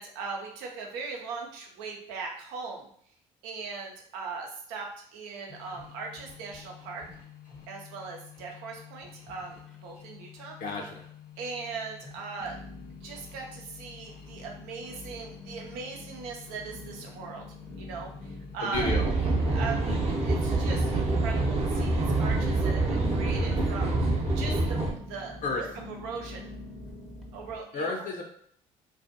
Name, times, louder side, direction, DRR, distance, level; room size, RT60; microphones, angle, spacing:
voice 1, 0.0-2.9 3.4-7.0 7.7-10.6 11.4-12.6 13.0-17.4 17.8-18.9 19.5-24.8 25.1-26.5 27.3-27.9, right 4 dB, 80° right, 1 dB, 0.6 m, -39 dB
sound 1, 5.5-21.6, left 10 dB, 75° left, 1.0 m, -50 dB
sound 2, 9.3-10.2 10.4-11.1 11.6-11.7 12.4-27.6, left 1 dB, ahead, 0.6 m, -45 dB
voice 2, 10.6-11.0 18.6-19.3 25.4-25.7 27.7-28.2, left 3 dB, 55° left, 1 dB, 0.6 m, -32 dB
sound 3, 18.7-24.9, right 2 dB, 40° right, 0.7 m, -26 dB
2.5 x 2.4 x 2.6 m, 0.63 s
hypercardioid pair, 55°, 17 cm